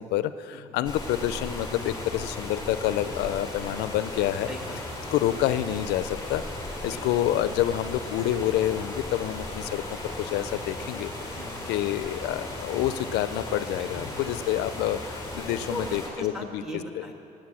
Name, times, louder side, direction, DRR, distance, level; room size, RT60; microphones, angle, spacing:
voice 1, 0.0-4.5 5.1-11.4 11.7-16.6, left 12 dB, 85° left, 14 dB, 0.4 m, -28 dB
sound 1, 0.8-16.1, left 2 dB, 20° left, 3.1 m, -36 dB
voice 2, 4.5-4.8 6.9-7.0 11.3-11.5 13.8-14.4 15.7-15.8 16.2-17.1, left 1 dB, 5° right, 2 dB, 1.5 m, -38 dB
9.5 x 8.8 x 7.3 m, 2.8 s
cardioid pair, 110°, 17 cm